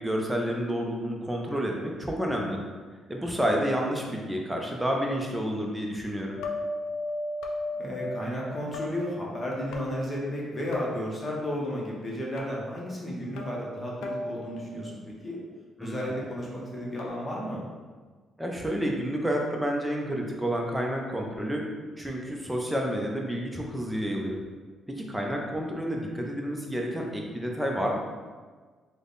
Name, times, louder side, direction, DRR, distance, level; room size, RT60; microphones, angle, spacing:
voice 1, 0.0-2.6 3.1-6.4 15.8-15.9 18.4-21.7 22.0-24.4 24.9-28.0, equal, 5° right, 0 dB, 0.6 m, -29 dB
sound 1, 6.4-8.9 9.7-10.5 10.7-11.1 12.4-12.5 13.4-14.6 16.0-17.1, left 2 dB, 90° left, 0.4 m, -36 dB
voice 2, 7.7-15.4 15.8-17.6, equal, 25° left, -4 dB, 0.9 m, -33 dB
3.4 x 2.2 x 3.9 m, 1.4 s
cardioid pair, 90°, 0 cm